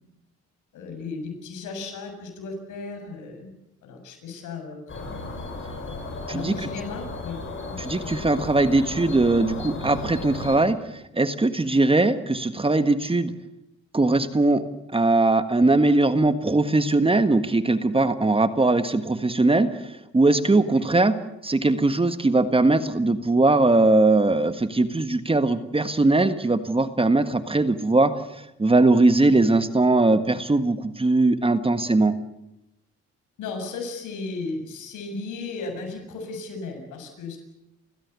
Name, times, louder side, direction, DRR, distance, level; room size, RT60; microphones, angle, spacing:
voice 1, 0.7-3.5 3.8-5.0 6.3-7.4 7.7-7.8 33.4-37.4, left 3 dB, 85° left, 4 dB, 7.3 m, -35 dB
sound 1, 4.9-10.6, left 2 dB, 40° left, 7.8 m, -35 dB
voice 2, 7.8-13.3 13.9-14.6 14.9-21.1 21.4-32.1, right 2 dB, 20° right, 10 dB, 1.6 m, -20 dB
30.0 x 16.0 x 8.4 m, 0.89 s
cardioid pair, 90°, 30 cm